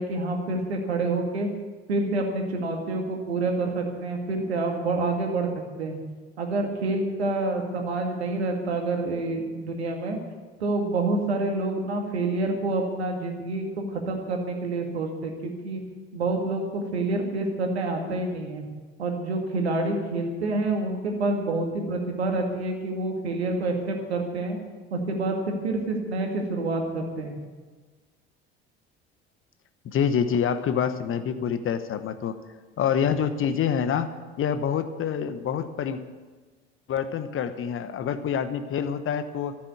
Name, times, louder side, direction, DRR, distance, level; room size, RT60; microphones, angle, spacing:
voice 1, 0.0-1.5 1.9-5.5 5.8-6.0 6.4-10.2 10.6-15.8 16.1-18.7 19.0-24.6 24.9-25.3 25.6-27.4, right 2 dB, 80° right, 3 dB, 2.1 m, -27 dB
voice 2, 29.8-32.4 32.8-34.1 34.4-36.0 36.9-39.6, left 7 dB, 40° left, 11 dB, 1.1 m, -26 dB
14.0 x 7.7 x 9.5 m, 1.4 s
figure-of-eight pair, 60°, 32 cm